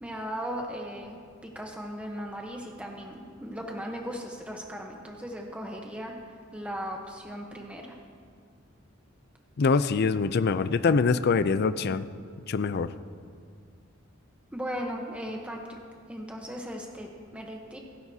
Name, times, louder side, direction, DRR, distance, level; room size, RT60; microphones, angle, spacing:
voice 1, 0.0-6.1 6.5-8.0 14.5-15.8 16.1-17.8, equal, 5° right, 0 dB, 1.0 m, -37 dB
voice 2, 9.6-12.1 12.5-12.9, left 4 dB, 55° left, 13 dB, 0.4 m, -24 dB
27.5 x 11.0 x 2.8 m, 2.1 s
head